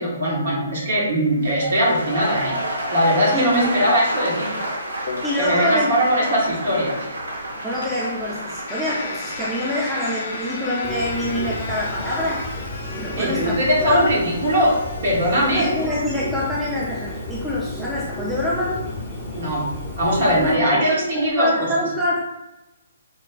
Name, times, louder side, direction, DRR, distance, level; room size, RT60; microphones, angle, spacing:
voice 1, 0.0-2.6 2.9-4.5 5.4-7.0 13.2-15.7 19.3-19.7 20.0-21.5, equal, 55° right, -4 dB, 1.2 m, -20 dB
sound 1, 1.3-17.4 17.7-18.1, right 1 dB, 80° right, 0.8 m, -32 dB
voice 2, 3.3-3.9 5.2-6.0 7.6-12.5 13.0-13.5 13.9-14.1 15.4-18.8 20.2-21.0 21.4-22.2, left 1 dB, 5° right, -6 dB, 0.5 m, -25 dB
sound 2, 5.1-21.3, left 3 dB, 50° left, 0.5 m, -37 dB
Bird, 10.8-20.5, left 1 dB, 10° left, 0.8 m, -32 dB
4.1 x 2.3 x 2.2 m, 1.0 s
figure-of-eight pair, 130°, 0 cm